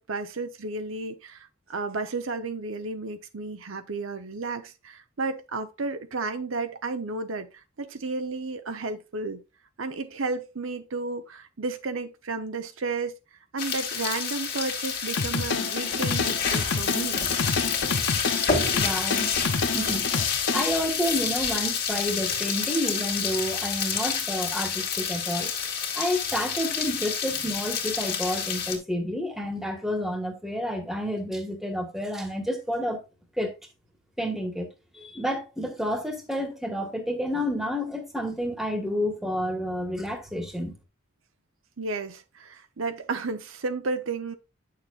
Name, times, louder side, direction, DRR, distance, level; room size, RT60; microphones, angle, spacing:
voice 1, 0.0-7.5 7.8-9.4 9.8-13.1 13.5-17.2 41.8-44.3, right 3 dB, 80° right, 0.8 m, -32 dB
sound 1, 13.6-28.8, left 6 dB, 45° left, 1.8 m, -28 dB
sound 2, 15.2-20.6, left 4 dB, 60° left, 0.7 m, -29 dB
voice 2, 18.7-19.3 19.7-20.0 20.5-25.5 25.9-33.0 33.4-33.5 34.2-34.7 34.9-40.8, equal, ahead, 1.4 m, -30 dB
9.4 x 6.6 x 2.4 m
head